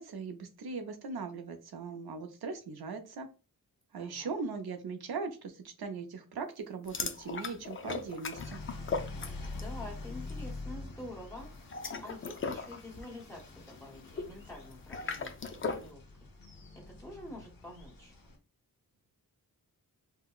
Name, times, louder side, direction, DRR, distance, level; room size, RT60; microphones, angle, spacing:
voice 1, 0.0-3.3 3.9-8.6, right 4 dB, 75° right, 6 dB, 0.6 m, -39 dB
voice 2, 4.0-4.3 9.4-11.5 12.0-16.0 16.7-18.1, left 1 dB, 10° left, -2 dB, 1.4 m, -47 dB
sound 1, 6.9-9.8 10.1-10.4 11.5-15.9, left 4 dB, 35° left, 0.4 m, -38 dB
sound 2, 8.3-18.4, left 3 dB, 65° left, 0.9 m, -46 dB
3.7 x 2.1 x 2.3 m, 0.32 s
wide cardioid pair, 75°, 37 cm